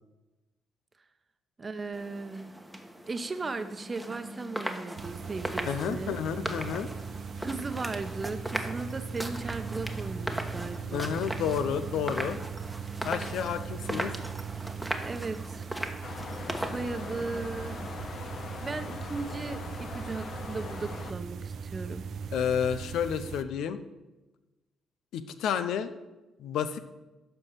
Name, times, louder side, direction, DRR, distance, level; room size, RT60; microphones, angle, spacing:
voice 1, 1.6-2.5 3.0-6.2 7.4-11.2 15.0-15.6 16.6-17.8 18.6-22.0, right 3 dB, 30° right, 9 dB, 0.9 m, -37 dB
sound 1, 1.9-17.9, right 1 dB, 5° right, 1.2 m, -38 dB
bathroom atmosphere, 5.0-23.4, right 6 dB, 65° right, 0.5 m, -39 dB
voice 2, 5.7-6.9 10.9-12.4 13.0-14.1 22.3-23.8 25.1-25.9 26.4-26.8, left 8 dB, 80° left, 11 dB, 0.7 m, -30 dB
sound 2, 16.0-21.1, left 5 dB, 55° left, 1.0 m, -41 dB
12.0 x 4.6 x 7.3 m, 1.1 s
cardioid pair, 90°, 0 cm